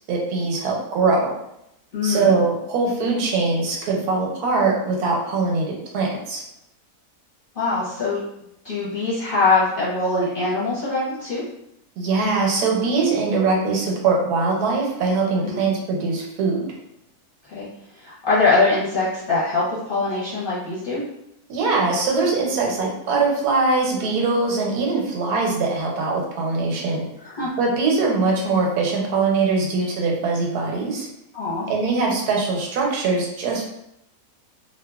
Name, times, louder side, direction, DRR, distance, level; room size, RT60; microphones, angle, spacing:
voice 1, 0.1-1.3 2.0-6.4 12.0-16.7 21.5-27.1 27.6-31.1 31.7-33.6, right 3 dB, 85° right, -1 dB, 1.2 m, -22 dB
voice 2, 1.9-2.3 7.6-8.2 8.6-11.4 15.4-15.7 17.5-17.7 18.0-21.0 27.2-27.5 31.3-31.7, left 3 dB, 45° left, -8 dB, 0.8 m, -22 dB
2.8 x 2.2 x 2.3 m, 0.79 s
omnidirectional pair, 1.6 m